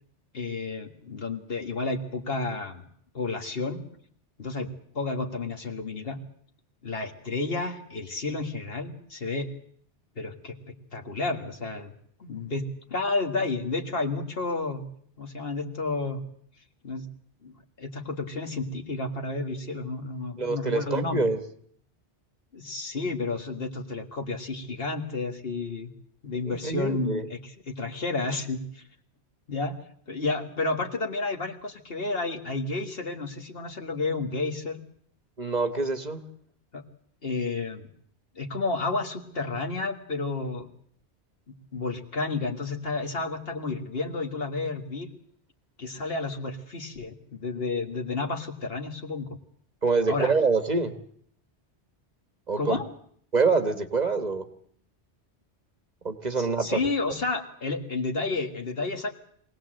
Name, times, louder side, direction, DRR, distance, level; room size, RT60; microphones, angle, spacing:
voice 1, 0.3-2.8 3.1-3.8 4.4-6.2 6.8-9.5 10.2-11.9 12.2-14.8 15.2-16.2 16.8-17.1 17.4-21.3 22.5-25.9 26.2-28.8 29.5-29.8 30.1-34.8 36.7-36.8 37.2-37.9 38.4-40.7 41.5-45.1 45.8-49.4 50.1-50.3 52.6-52.9 56.4-59.1, left 3 dB, 55° left, 3 dB, 1.9 m, -31 dB
voice 2, 20.4-21.4 26.5-27.2 35.4-36.2 49.8-50.9 52.5-52.8 53.3-54.4 56.0-56.8, right 4 dB, 40° right, 8 dB, 1.3 m, -25 dB
23.5 x 18.0 x 7.7 m, 0.64 s
omnidirectional pair, 1.2 m